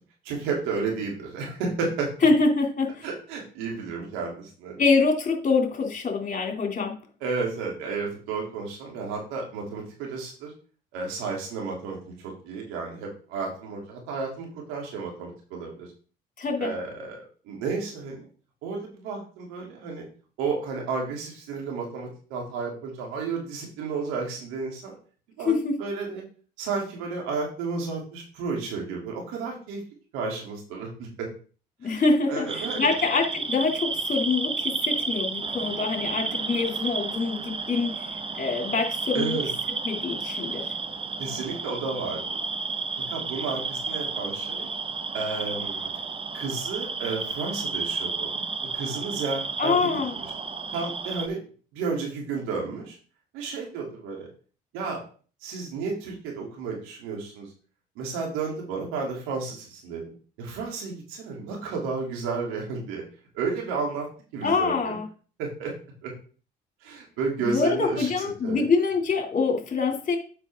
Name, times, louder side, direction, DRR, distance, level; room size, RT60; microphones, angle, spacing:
voice 1, 0.2-2.1 3.0-4.8 7.2-10.5 10.9-15.9 16.6-18.3 18.6-20.0 20.4-24.9 25.4-26.2 26.6-29.8 30.1-31.3 31.8-32.9 39.1-39.5 41.2-42.4 43.1-44.7 45.1-45.9 46.3-48.5 48.7-50.0 50.7-51.4 51.7-53.0 53.3-54.3 54.7-55.0 55.4-57.5 57.9-60.0 60.4-63.0 63.3-64.1 64.3-65.0 65.4-65.7 66.0-66.1 66.8-68.1 68.4-68.6, right 4 dB, 80° right, -1 dB, 3.1 m, -32 dB
voice 2, 2.2-3.1 4.8-7.0 16.4-16.7 25.5-25.8 31.8-39.4 39.7-40.7 49.6-50.1 64.4-65.0 67.4-70.2, left 4 dB, 40° left, 2 dB, 2.8 m, -25 dB
sound 1, 32.5-51.3, right 4 dB, 25° right, 0.9 m, -32 dB
8.2 x 5.8 x 3.7 m, 0.39 s
supercardioid pair, 65°, 20 cm